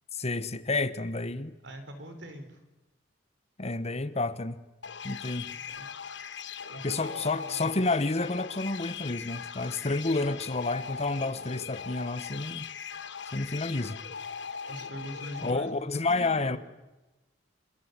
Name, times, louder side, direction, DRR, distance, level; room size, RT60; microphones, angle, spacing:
voice 1, 0.1-1.5 3.6-4.6 5.0-5.5 6.8-12.7 13.3-14.0 15.4-16.6, left 3 dB, 35° left, 1.2 m, -30 dB
voice 2, 1.6-2.6 5.8-5.9 6.7-7.8 14.7-16.6, equal, 70° right, 4.5 m, -42 dB
sound 1, 4.8-15.5, left 7 dB, 70° left, 1.1 m, -40 dB
27.0 x 26.0 x 8.2 m
head